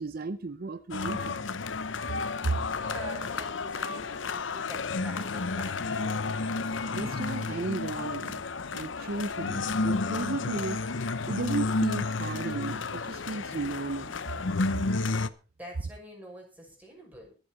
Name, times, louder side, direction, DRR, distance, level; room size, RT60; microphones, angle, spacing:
voice 1, 0.0-1.4 2.4-2.6 6.9-8.4 8.7-10.8 11.3-14.2, right 3 dB, 50° right, 0.6 m, -34 dB
sound 1, 0.9-15.3, left 3 dB, 90° left, 0.8 m, -31 dB
voice 2, 2.8-6.4 15.6-17.3, right 1 dB, 10° right, 6.1 m, -46 dB
23.5 x 8.2 x 4.1 m
head